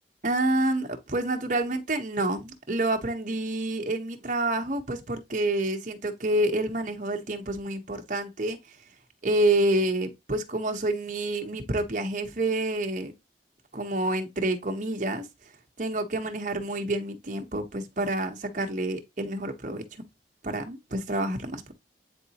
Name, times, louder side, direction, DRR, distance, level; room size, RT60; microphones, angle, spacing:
voice 1, 0.2-8.8 9.2-13.1 13.7-15.3 15.8-19.8 20.4-21.7, right 1 dB, 45° right, 1.1 m, -28 dB
8.9 x 3.9 x 2.9 m
head